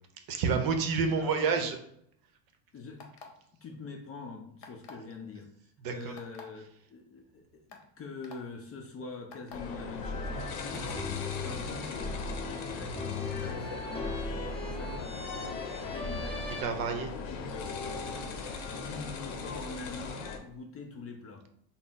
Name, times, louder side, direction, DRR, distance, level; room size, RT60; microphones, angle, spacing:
voice 1, 0.3-1.8 5.8-6.1 16.6-17.1 18.4-18.6, right 5 dB, 50° right, 5 dB, 0.7 m, -29 dB
voice 2, 1.1-1.7 2.7-3.1 3.6-5.5 5.9-10.9 11.4-15.4 15.8-16.7 17.1-17.9 18.8-21.5, left 4 dB, 30° left, 3 dB, 0.5 m, -44 dB
sound 1, 3.0-3.5 4.6-5.1 6.2-6.4 7.2-7.3 7.7-7.8 8.2-8.4 9.3-9.6 10.7-11.0, left 4 dB, 50° left, 0.9 m, -47 dB
sound 2, 9.5-20.4, left 4 dB, 85° left, 0.7 m, -39 dB
sound 3, 10.0-16.6, left 2 dB, 10° left, 0.8 m, -38 dB
3.8 x 2.0 x 3.9 m, 0.69 s
supercardioid pair, 95°, 48 cm